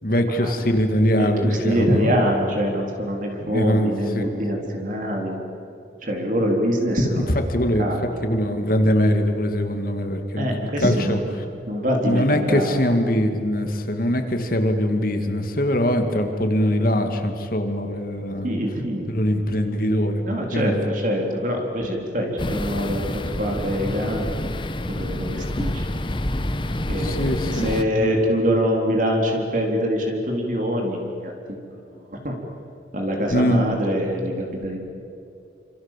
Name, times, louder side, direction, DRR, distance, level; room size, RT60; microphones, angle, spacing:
voice 1, 0.0-2.1 3.4-4.4 4.6-4.8 5.1-5.2 7.5-7.8 8.2-11.4 12.0-18.6 19.1-20.2 20.5-20.9 21.8-21.9 27.0-28.1 33.3-33.6, equal, 50° left, 5 dB, 2.3 m, -22 dB
voice 2, 1.2-5.4 6.0-7.4 7.8-8.0 10.4-11.3 11.7-12.8 18.4-19.1 20.3-24.3 25.0-25.7 26.9-31.6 32.1-32.3 32.9-34.8, equal, 45° right, 1 dB, 3.8 m, -24 dB
sound 1, 22.4-27.8, left 1 dB, 25° left, 1.0 m, -27 dB
27.5 x 26.5 x 7.5 m, 2.6 s
head